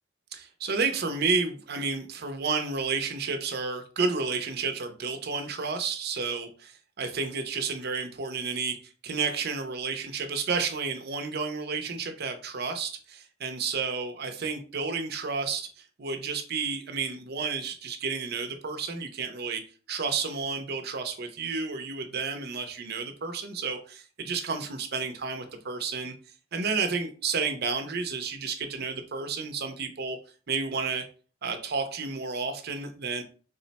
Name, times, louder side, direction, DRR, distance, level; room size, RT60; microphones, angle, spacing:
voice 1, 0.3-8.8 9.0-19.6 19.9-26.1 26.5-30.2 30.5-31.0 31.4-33.2, right 4 dB, 50° right, 5 dB, 0.5 m, -31 dB
3.7 x 2.1 x 3.9 m, 0.38 s
head